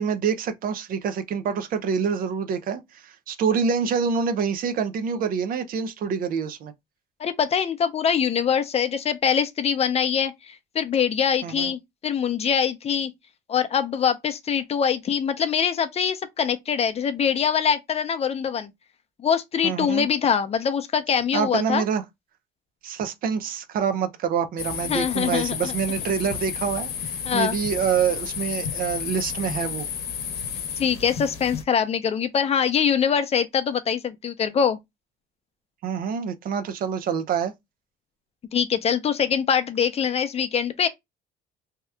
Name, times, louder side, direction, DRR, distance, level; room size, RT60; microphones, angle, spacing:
voice 1, 0.0-6.7 11.4-11.7 19.6-20.1 21.3-22.0 22.8-29.9 35.8-37.5, right 6 dB, 55° right, 0.5 m, -26 dB
voice 2, 7.2-13.1 13.5-18.7 19.2-21.8 24.9-25.7 27.3-27.6 30.8-34.8 38.5-40.9, left 7 dB, 40° left, 0.5 m, -23 dB
sound 1, 24.6-31.6, left 7 dB, 70° left, 0.9 m, -32 dB
2.8 x 2.3 x 3.2 m
cardioid pair, 110°, 17 cm